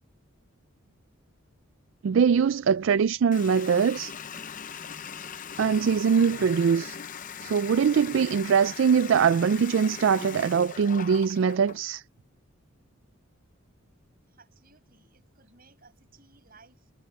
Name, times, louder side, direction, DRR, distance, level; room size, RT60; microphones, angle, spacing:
voice 1, 2.0-4.1 5.6-7.0 7.4-12.0, right 6 dB, 65° right, 0.3 m, -22 dB
Water tap faucet, 3.3-11.8, left 7 dB, 40° left, 0.7 m, -40 dB
voice 2, 14.3-16.9, right 4 dB, 45° right, 7.0 m, -58 dB
head